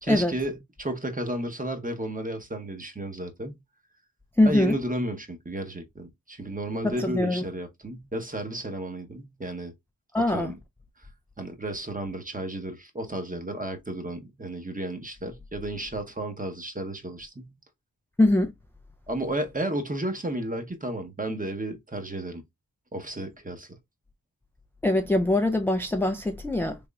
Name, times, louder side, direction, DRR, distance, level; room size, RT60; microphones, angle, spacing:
voice 1, 0.0-3.6 4.4-9.7 10.3-10.6 11.4-17.5 19.1-22.4 22.9-23.8, right 1 dB, 25° right, 0.9 m, -33 dB
voice 2, 4.4-4.8 6.8-7.5 10.1-10.5 18.2-18.5 24.8-26.8, left 1 dB, 5° left, 0.3 m, -23 dB
3.5 x 3.0 x 2.3 m
cardioid pair, 45°, 36 cm